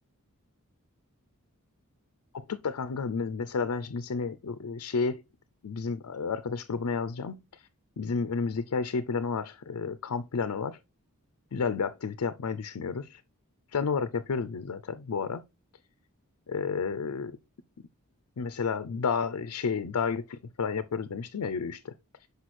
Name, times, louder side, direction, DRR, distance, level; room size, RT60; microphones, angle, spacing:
voice 1, 2.3-5.2 5.6-7.7 8.0-10.8 11.5-13.2 13.7-15.4 16.5-17.3 18.4-21.9, left 5 dB, 90° left, 0.5 m, -31 dB
6.2 x 5.2 x 4.2 m
head